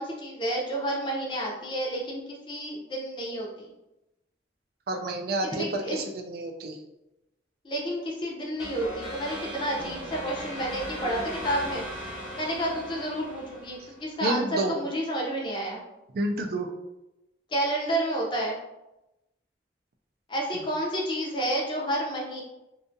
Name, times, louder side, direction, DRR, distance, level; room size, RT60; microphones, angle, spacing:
voice 1, 0.0-2.2 2.5-3.7 5.4-6.0 7.6-11.8 12.3-15.8 17.5-18.6 20.3-22.4, right 1 dB, 25° left, -2 dB, 0.5 m, -30 dB
voice 2, 4.9-6.8 14.2-14.7 16.1-16.7 20.5-20.6, right 2 dB, 60° right, 4 dB, 0.4 m, -29 dB
sound 1, 8.6-14.1, equal, 5° right, 0.7 m, -38 dB
2.6 x 2.3 x 2.5 m, 0.95 s
head